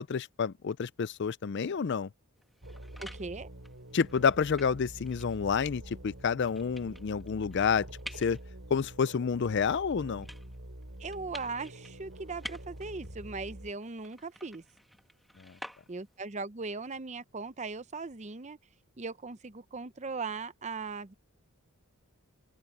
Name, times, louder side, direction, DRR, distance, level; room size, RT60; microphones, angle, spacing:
voice 1, 0.0-2.1 3.9-7.9 8.2-8.4 8.7-10.3, left 6 dB, 50° left, 0.4 m, -29 dB
sound 1, 2.4-16.3, equal, ahead, 1.4 m, -51 dB
sound 2, 2.6-13.7, right 1 dB, 60° right, 3.1 m, -47 dB
voice 2, 3.0-3.5 11.0-14.6 15.9-18.6 19.0-21.1, right 4 dB, 30° right, 0.7 m, -39 dB
open air
head